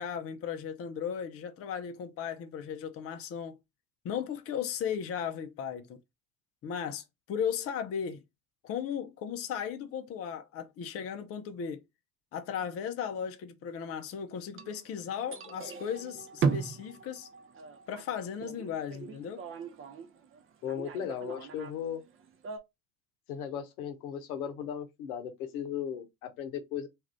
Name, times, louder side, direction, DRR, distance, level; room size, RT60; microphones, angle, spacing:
voice 1, 0.0-3.6 4.0-6.0 6.6-8.2 8.6-11.8 12.3-17.3 17.9-19.4, left 8 dB, 30° left, 0.5 m, -36 dB
sound 1, 14.5-22.6, right 5 dB, 30° right, 0.6 m, -37 dB
voice 2, 20.6-22.0 23.3-26.9, left 8 dB, 70° left, 0.8 m, -36 dB
2.5 x 2.4 x 3.3 m
hypercardioid pair, 60°, 45 cm